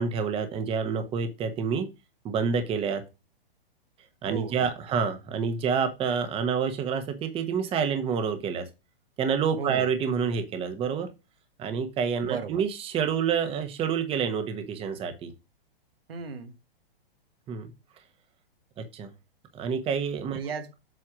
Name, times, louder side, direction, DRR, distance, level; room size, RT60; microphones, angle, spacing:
voice 1, 0.0-1.9 2.2-3.0 4.2-8.7 9.2-11.1 11.6-15.3 17.5-17.7 18.8-19.1 19.5-20.4, right 6 dB, 20° right, 1.1 m, -28 dB
voice 2, 4.3-4.7 9.6-9.9 12.3-12.6 16.1-16.6 20.3-20.7, right 5 dB, 80° right, 1.4 m, -35 dB
7.8 x 3.5 x 4.8 m
hypercardioid pair, 140°, 29 cm